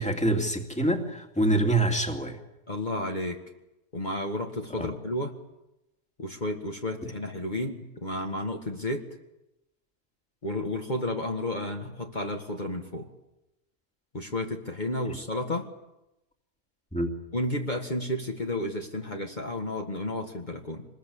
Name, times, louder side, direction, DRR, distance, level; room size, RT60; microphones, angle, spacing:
voice 1, 0.0-2.4 4.8-4.9 16.9-17.1, right 1 dB, 5° left, 4 dB, 2.5 m, -25 dB
voice 2, 2.7-3.4 3.9-5.3 6.2-9.1 10.4-13.1 14.1-15.6 17.3-20.9, left 1 dB, 40° left, 2 dB, 1.9 m, -32 dB
26.0 x 20.5 x 8.5 m, 0.94 s
omnidirectional pair, 1.3 m